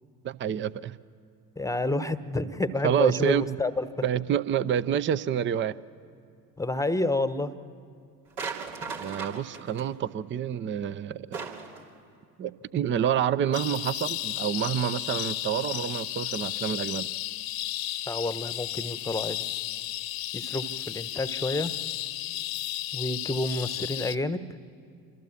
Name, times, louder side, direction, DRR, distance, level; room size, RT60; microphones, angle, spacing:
voice 1, 0.2-1.0 2.8-3.6 4.0-5.8 9.0-11.4 12.4-17.1, right 9 dB, 25° right, 17 dB, 0.6 m, -28 dB
voice 2, 1.6-3.9 6.6-7.6 18.1-19.4 20.3-21.7 22.9-24.4, left 2 dB, 5° left, 14 dB, 1.1 m, -29 dB
sound 1, 8.4-9.8 11.3-11.8, right 5 dB, 75° right, 3.0 m, -36 dB
sound 2, 13.5-24.2, left 15 dB, 45° left, 1.0 m, -33 dB
27.0 x 25.5 x 7.2 m, 2.4 s
figure-of-eight pair, 60°, 48 cm